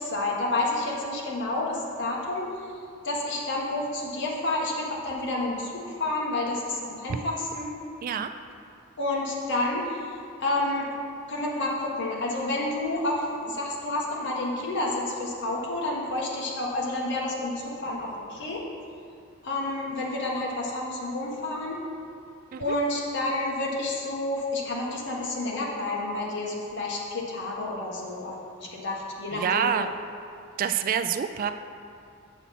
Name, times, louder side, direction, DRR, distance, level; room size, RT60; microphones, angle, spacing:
voice 1, 0.0-2.5 3.0-7.7 9.0-10.0 10.4-11.0 11.3-18.6 19.4-21.8 22.6-28.4 28.7-29.9, left 2 dB, 60° left, -3 dB, 1.4 m, -29 dB
voice 2, 29.3-29.9 30.6-31.5, right 8 dB, 45° right, 9 dB, 0.3 m, -27 dB
7.2 x 6.9 x 4.2 m, 2.4 s
head